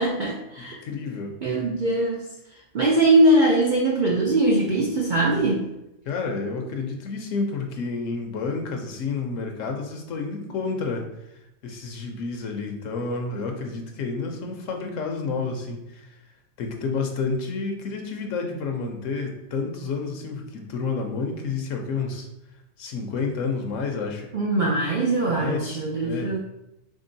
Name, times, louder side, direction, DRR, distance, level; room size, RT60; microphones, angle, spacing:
voice 1, 0.0-0.8 1.4-2.3 2.7-5.7 24.3-26.4, right 1 dB, 65° right, -2 dB, 0.5 m, -21 dB
voice 2, 0.8-1.4 6.1-11.1 11.6-16.2 16.6-22.3 22.8-24.3 25.3-26.3, left 4 dB, 75° left, 3 dB, 1.0 m, -30 dB
3.8 x 3.7 x 2.6 m, 0.89 s
omnidirectional pair, 1.4 m